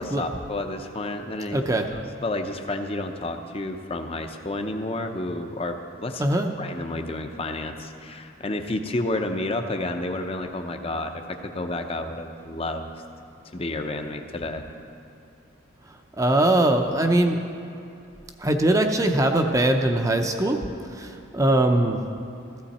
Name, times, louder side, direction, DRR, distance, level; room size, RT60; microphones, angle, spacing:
voice 1, 0.0-1.6 1.9-6.3 6.6-12.9 13.5-14.6, left 2 dB, 30° left, 6 dB, 0.6 m, -30 dB
voice 2, 1.5-1.9 6.2-6.5 16.2-17.4 18.4-20.6 20.9-22.0, right 1 dB, 15° right, 4 dB, 0.6 m, -21 dB
15.0 x 13.0 x 4.2 m, 2.6 s
head